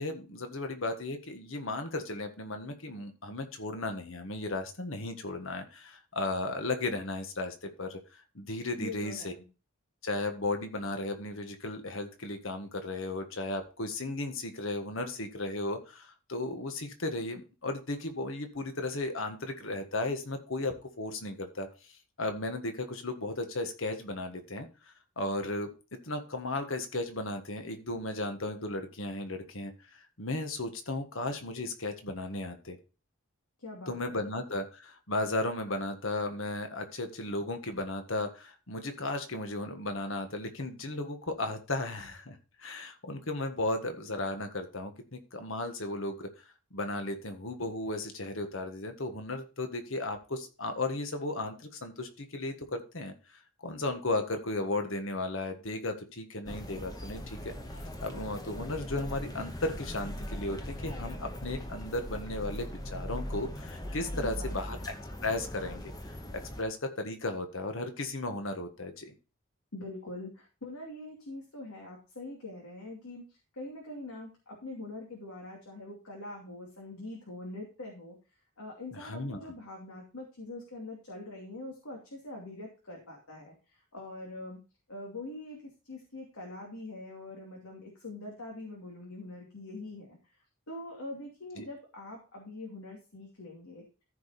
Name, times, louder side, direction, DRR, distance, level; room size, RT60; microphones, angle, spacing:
voice 1, 0.0-9.3 10.0-21.7 22.2-24.7 25.2-25.7 26.0-32.8 33.9-46.3 46.7-57.5 58.0-64.9 65.2-69.1 78.9-79.5 91.6-91.7, left 2 dB, 70° left, 6 dB, 1.6 m, -35 dB
voice 2, 8.8-9.5 33.6-34.3 64.1-64.9 69.7-78.2 78.6-84.6 84.9-85.6 85.9-90.2 90.7-93.8, left 2 dB, 90° left, -1 dB, 2.7 m, -43 dB
sound 1, 56.5-66.6, equal, 15° left, 1.0 m, -40 dB
14.0 x 5.2 x 4.2 m, 0.33 s
head